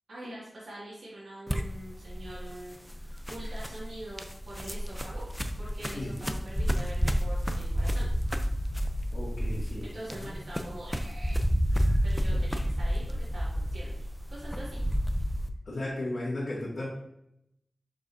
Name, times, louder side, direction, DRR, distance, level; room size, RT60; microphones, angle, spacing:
voice 1, 0.1-5.2 5.6-8.1 9.8-11.3 12.0-14.8, right 1 dB, 70° right, -8 dB, 2.3 m, -44 dB
sound 1, 1.5-15.5, equal, 5° left, 0.6 m, -30 dB
voice 2, 9.1-9.9 10.2-10.3 11.8-12.0 15.7-16.9, left 1 dB, 70° left, -9 dB, 2.1 m, -35 dB
6.6 x 5.2 x 2.8 m, 0.78 s
cardioid pair, 50°, 0 cm